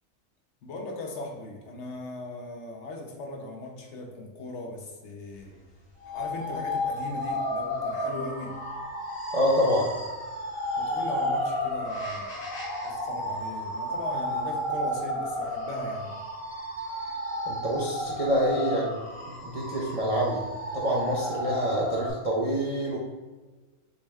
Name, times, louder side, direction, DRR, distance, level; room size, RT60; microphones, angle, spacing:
voice 1, 0.6-5.6 6.0-8.6 10.8-16.2, left 2 dB, 65° left, 1 dB, 1.0 m, -38 dB
sound 1, 6.0-22.1, left 1 dB, 80° left, 2.0 m, -32 dB
voice 2, 9.3-10.0 17.5-19.0 19.3-20.4 20.7-23.0, equal, 50° right, -4 dB, 0.4 m, -26 dB
6.2 x 2.1 x 3.4 m, 1.3 s
omnidirectional pair, 1.4 m